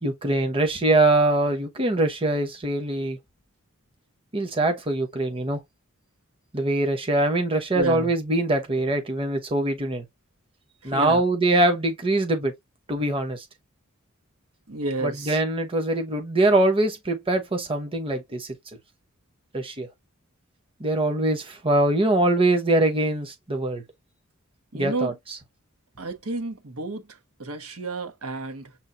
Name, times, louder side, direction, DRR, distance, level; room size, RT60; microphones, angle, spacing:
voice 1, 0.0-3.2 4.3-5.6 6.5-10.0 10.8-12.5 12.9-13.4 15.0-18.5 19.5-19.9 20.8-23.8 24.7-25.1, right 2 dB, 25° right, 0.9 m, -23 dB
voice 2, 7.7-8.1 10.8-11.2 14.7-15.4 24.7-25.2 26.0-28.8, right 3 dB, 85° right, 1.3 m, -31 dB
7.2 x 2.4 x 2.7 m
head